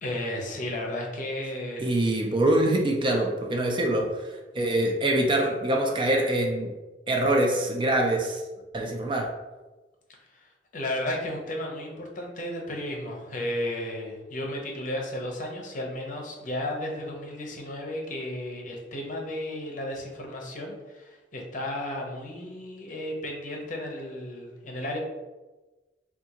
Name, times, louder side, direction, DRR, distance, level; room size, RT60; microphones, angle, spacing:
voice 1, 0.0-1.9 10.3-25.0, left 1 dB, 45° left, 0 dB, 0.7 m, -34 dB
voice 2, 1.8-4.1 4.5-6.7 7.1-8.4 8.7-9.3, right 1 dB, 30° right, 1 dB, 0.4 m, -24 dB
3.6 x 2.4 x 2.8 m, 1.2 s
head